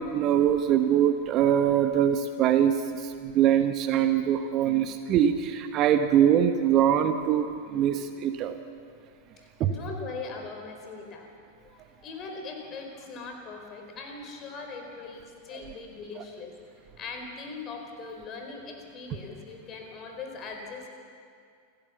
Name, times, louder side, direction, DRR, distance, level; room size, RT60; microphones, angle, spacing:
voice 1, 0.0-8.5 9.6-9.7, right 9 dB, 35° right, 8 dB, 1.1 m, -23 dB
voice 2, 9.3-11.3 11.6-16.5 17.0-20.9, left 4 dB, 30° left, 3 dB, 4.5 m, -40 dB
28.5 x 15.5 x 7.1 m, 2.3 s
figure-of-eight pair, 90°, 0 cm